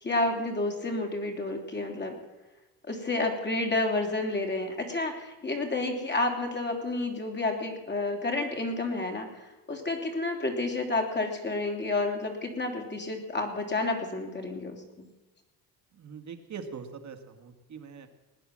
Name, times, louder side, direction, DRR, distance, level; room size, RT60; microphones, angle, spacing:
voice 1, 0.0-2.2 2.9-15.1, left 2 dB, 25° left, 3 dB, 3.3 m, -30 dB
voice 2, 15.9-18.1, right 6 dB, 45° right, 7 dB, 2.0 m, -42 dB
19.5 x 9.7 x 7.5 m, 1.1 s
cardioid pair, 110°, 40 cm